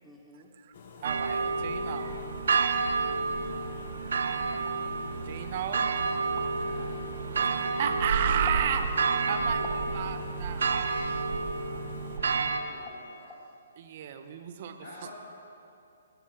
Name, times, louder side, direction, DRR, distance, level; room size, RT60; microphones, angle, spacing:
voice 1, 0.0-0.5, equal, 5° left, -1 dB, 1.3 m, -57 dB
sound 1, 0.7-12.2, left 5 dB, 50° left, 1.1 m, -49 dB
voice 2, 1.0-2.1 5.3-5.8 7.4-10.9 13.8-14.8, right 8 dB, 45° right, 8 dB, 1.0 m, -32 dB
sound 2, 1.0-12.6, right 4 dB, 70° right, 0.9 m, -30 dB
sound 3, 2.3-2.7 3.6-3.7 4.5-4.8 6.4-6.5 8.5-8.7 9.6-9.9 10.7-10.9 12.2-12.3 12.9-13.0 13.3-13.4, left 3 dB, 20° left, 1.9 m, -44 dB
voice 3, 6.3-6.8 12.1-13.4 14.8-15.1, left 2 dB, 70° left, -8 dB, 3.3 m, -48 dB
20.0 x 6.7 x 5.9 m, 2.7 s
hypercardioid pair, 140°, 0 cm